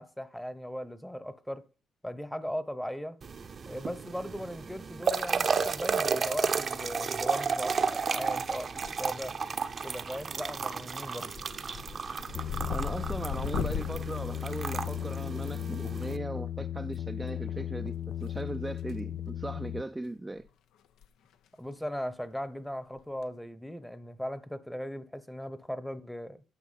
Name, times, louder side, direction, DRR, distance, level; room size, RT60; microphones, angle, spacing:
voice 1, 0.0-1.6 2.0-3.2 3.7-8.7 9.0-9.3 9.8-11.3 21.6-26.4, equal, 5° left, 0.9 m, -38 dB
sound 1, 3.2-16.2, right 5 dB, 45° right, 0.7 m, -33 dB
sound 2, 8.7-9.3 9.6-10.1 10.4-10.7 11.1-15.5 16.8-17.0 18.2-19.0 19.3-19.5 20.0-20.1 20.4-20.5 20.8-21.0 21.3-21.4 23.0-23.2, left 8 dB, 85° left, 0.7 m, -39 dB
sound 3, 12.3-19.8, left 10 dB, 60° left, 0.4 m, -36 dB
voice 2, 12.7-20.5, right 2 dB, 15° right, 0.4 m, -38 dB
9.6 x 6.0 x 5.8 m
cardioid pair, 90°, 0 cm